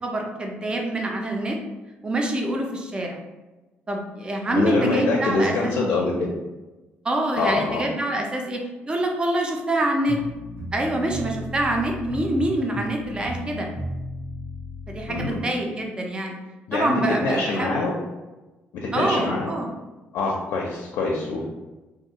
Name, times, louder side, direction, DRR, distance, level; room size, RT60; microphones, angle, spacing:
voice 1, 0.0-1.6 2.0-3.2 3.9-6.2 7.0-8.6 8.9-10.2 10.7-13.7 14.9-16.4 16.7-17.8 18.9-19.7, right 1 dB, 20° right, 1 dB, 0.4 m, -25 dB
voice 2, 4.5-6.3 7.4-7.9 15.1-15.4 16.7-16.9 17.2-17.9 18.7-19.5 20.1-21.5, left 3 dB, 75° left, -1 dB, 0.4 m, -25 dB
sound 1, 10.1-15.4, equal, 85° right, 1.2 m, -35 dB
2.5 x 2.3 x 2.8 m, 1.1 s
cardioid pair, 125°, 4 cm